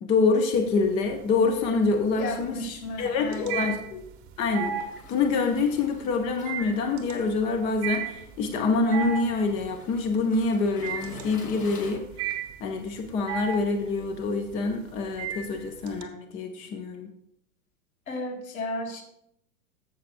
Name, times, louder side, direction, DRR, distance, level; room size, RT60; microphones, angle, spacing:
voice 1, 0.0-2.6 3.0-4.0 4.4-12.0 12.6-17.1, left 4 dB, 15° left, 6 dB, 0.4 m, -26 dB
sound 1, 0.5-1.2 1.5-16.0, right 8 dB, 30° right, 0.9 m, -35 dB
voice 2, 2.1-3.8 18.1-19.0, left 2 dB, 65° left, 1 dB, 2.4 m, -34 dB
Waves surf, 4.9-11.9, left 2 dB, 80° left, 2.4 m, -48 dB
14.5 x 5.8 x 2.4 m, 0.76 s
figure-of-eight pair, 100°, 46 cm